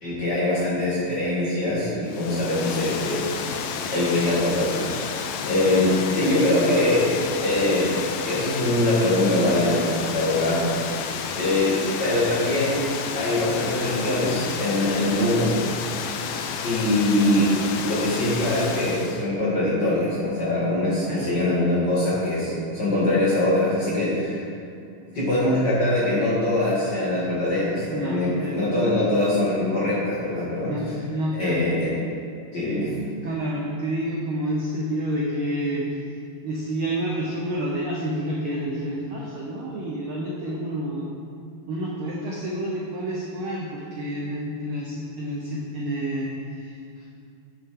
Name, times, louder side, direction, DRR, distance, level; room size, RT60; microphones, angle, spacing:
voice 1, 0.0-3.6 3.9-5.1 5.4-7.1 7.4-8.0 8.2-10.6 11.3-12.8 13.2-15.5 16.6-17.5 17.8-24.4 25.1-30.7 31.3-32.0 32.5-32.9, left 1 dB, 40° left, -7 dB, 1.8 m, -23 dB
Water, 2.1-19.3, left 6 dB, 85° left, 1.6 m, -31 dB
voice 2, 27.9-28.6 30.7-31.6 33.2-35.8 36.4-41.1 41.7-47.1, right 1 dB, 75° right, -4 dB, 1.2 m, -29 dB
10.0 x 6.8 x 3.7 m, 2.5 s
omnidirectional pair, 3.7 m